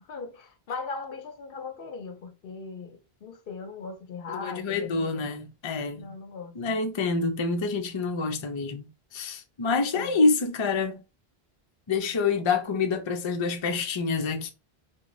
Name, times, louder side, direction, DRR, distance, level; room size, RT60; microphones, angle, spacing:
voice 1, 0.1-5.3 6.0-6.8 9.9-10.2, left 4 dB, 65° left, 0.7 m, -39 dB
voice 2, 4.3-6.1 6.6-11.0 11.9-14.5, left 4 dB, 40° left, 0.4 m, -27 dB
4.7 x 2.2 x 2.5 m
omnidirectional pair, 1.1 m